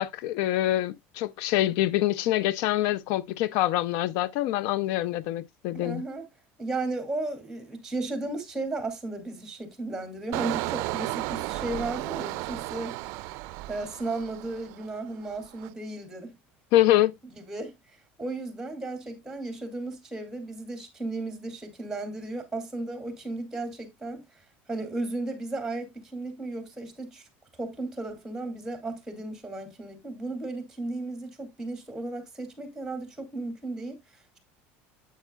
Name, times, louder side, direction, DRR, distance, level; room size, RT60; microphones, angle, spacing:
voice 1, 0.0-6.0 16.7-17.1, left 14 dB, 70° left, 0.4 m, -25 dB
voice 2, 5.7-6.3 6.6-13.0 13.7-16.4 17.2-27.3 27.6-34.0, right 2 dB, 10° right, 2.4 m, -35 dB
Engine, 10.3-15.0 15.4-15.7, right 20 dB, 65° right, 0.4 m, -34 dB
8.9 x 8.2 x 2.2 m
cardioid pair, 140°, 5 cm